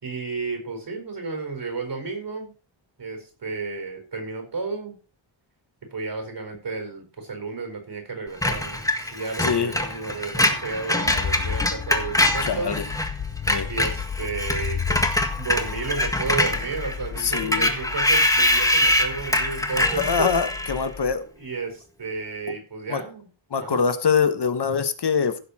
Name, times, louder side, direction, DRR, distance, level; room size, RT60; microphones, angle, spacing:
voice 1, 0.0-2.5 3.0-5.0 5.8-12.7 13.7-15.1 15.4-20.3 21.4-23.3 23.6-23.8, right 4 dB, 60° right, 4 dB, 4.8 m, -32 dB
Screech, 8.4-13.1 13.4-20.8, left 1 dB, 5° left, 1.6 m, -24 dB
voice 2, 9.4-9.7 12.4-12.8 13.5-13.7 17.2-17.7 20.0-21.2 22.9-23.0 23.5-25.4, left 6 dB, 55° left, 10 dB, 1.3 m, -23 dB
sound 1, 11.0-21.1, left 7 dB, 35° left, 0.7 m, -34 dB
16.0 x 6.9 x 4.2 m, 0.35 s
wide cardioid pair, 130°, 48 cm